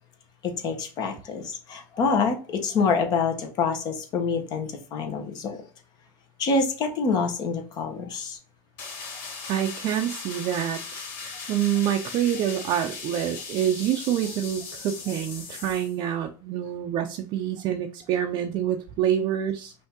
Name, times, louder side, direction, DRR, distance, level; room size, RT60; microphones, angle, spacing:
voice 1, 0.4-5.6 6.4-8.4, left 4 dB, 45° left, 5 dB, 1.2 m, -26 dB
sound 1, 8.8-16.0, left 5 dB, 70° left, 2.2 m, -38 dB
voice 2, 9.5-19.7, right 10 dB, 45° right, 4 dB, 0.5 m, -27 dB
5.3 x 2.8 x 3.6 m, 0.37 s
supercardioid pair, 140°, 10 cm